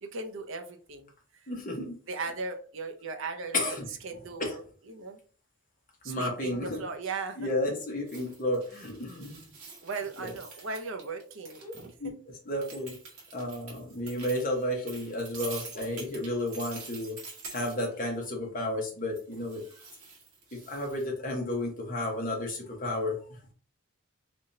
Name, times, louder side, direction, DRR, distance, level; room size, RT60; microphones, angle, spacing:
voice 1, 0.0-1.4 2.1-3.8 4.0-5.2 6.0-7.5 9.8-12.1, right 4 dB, 60° right, 5 dB, 0.6 m, -38 dB
voice 2, 1.5-2.0 3.5-3.8 4.4-4.5 6.0-6.8 7.4-9.5 10.2-10.3 11.6-11.7 12.0-12.1 12.5-13.0 13.3-17.2 17.5-19.6 20.5-23.1, left 1 dB, 35° left, 0 dB, 1.2 m, -32 dB
sound 1, 8.1-11.9 12.6-18.0 19.2-21.1, right 4 dB, 75° right, 1.6 m, -46 dB
3.6 x 3.4 x 2.8 m, 0.41 s
head